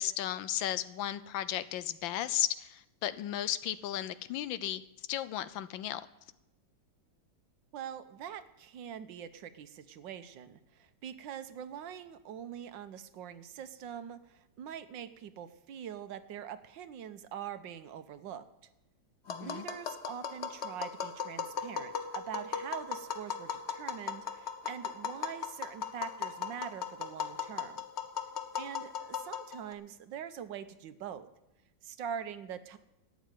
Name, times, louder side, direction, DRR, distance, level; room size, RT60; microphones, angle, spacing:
voice 1, 0.0-4.8 5.1-6.0 19.3-19.6, left 12 dB, 80° left, 15 dB, 1.4 m, -34 dB
voice 2, 7.7-18.4 19.4-27.8 28.6-31.3 31.8-32.8, right 9 dB, 75° right, 11 dB, 1.5 m, -43 dB
Tap, 19.3-29.7, left 7 dB, 45° left, 1.1 m, -38 dB
12.5 x 8.5 x 9.2 m, 0.93 s
omnidirectional pair, 2.1 m